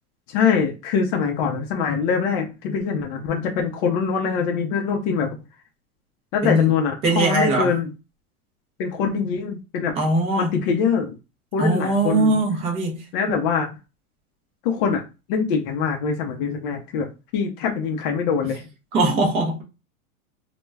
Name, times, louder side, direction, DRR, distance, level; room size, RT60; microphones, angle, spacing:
voice 1, 0.3-5.4 6.3-7.9 8.8-9.9 10.4-11.2 11.5-12.3 13.1-13.7 14.6-15.0 15.3-18.7, left 6 dB, 40° left, 0.5 m, -23 dB
voice 2, 7.0-7.7 10.0-10.5 11.6-13.0 13.3-13.4 18.4-18.5 18.9-19.6, right 2 dB, 15° right, 0.4 m, -21 dB
2.2 x 2.1 x 3.2 m
hypercardioid pair, 135°, 44 cm